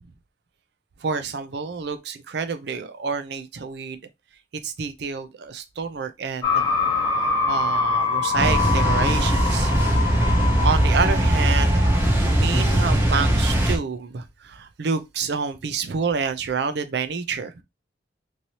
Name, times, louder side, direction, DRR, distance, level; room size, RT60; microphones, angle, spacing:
voice 1, 1.0-4.0 4.6-6.7 7.2-9.7 10.1-10.2 10.6-17.6, right 5 dB, 55° right, 0.4 m, -28 dB
sound 1, 6.4-12.9, left 4 dB, 20° left, 0.8 m, -25 dB
sound 2, 8.4-13.8, right 1 dB, 10° right, 0.6 m, -20 dB
3.1 x 2.7 x 2.8 m
head